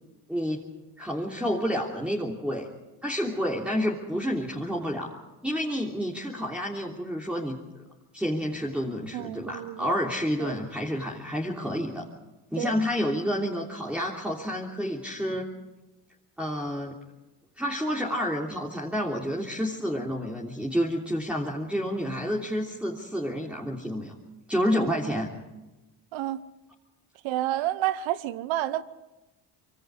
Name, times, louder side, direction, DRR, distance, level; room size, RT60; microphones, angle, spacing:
voice 1, 0.3-0.6 1.0-2.7 3.0-5.2 5.4-7.6 8.1-12.1 12.5-15.5 16.4-16.9 17.6-24.2 24.5-25.3, equal, 5° right, 3.1 m, -29 dB
voice 2, 9.1-10.0 10.4-10.6 12.6-12.8 26.1-26.4 27.2-28.8, right 14 dB, 75° right, 1.1 m, -29 dB
26.0 x 23.5 x 5.0 m
supercardioid pair, 65°, 46 cm